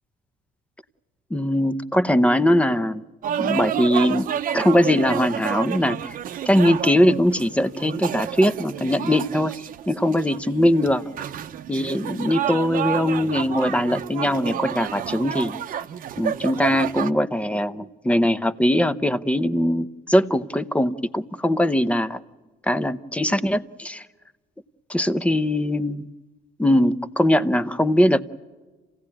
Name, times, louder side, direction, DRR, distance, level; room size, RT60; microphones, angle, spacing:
voice 1, 1.3-3.0 3.4-4.3 4.5-6.2 6.5-9.5 9.9-11.0 11.7-15.6 16.2-22.2 22.7-24.1 24.9-26.1 26.6-28.2, left 1 dB, 5° left, 13 dB, 0.8 m, -21 dB
sound 1, 3.2-17.1, right 10 dB, 55° right, 0.8 m, -30 dB
28.0 x 16.5 x 9.9 m, 1.3 s
cardioid pair, 110°, 17 cm